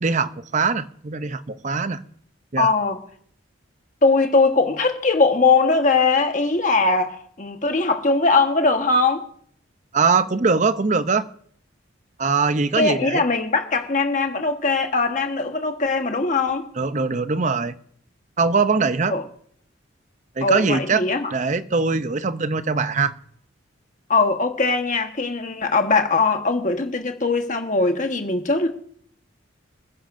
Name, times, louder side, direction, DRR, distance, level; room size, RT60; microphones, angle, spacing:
voice 1, 0.0-2.0 2.5-2.7 9.9-11.3 12.2-13.2 16.8-17.7 18.4-19.1 20.4-21.1 21.3-23.2, right 4 dB, 35° right, 0.6 m, -22 dB
voice 2, 2.6-3.0 4.0-9.3 12.8-16.7 19.1-19.2 20.4-21.3 24.1-28.7, left 3 dB, 40° left, 1.3 m, -20 dB
26.5 x 10.0 x 2.6 m
head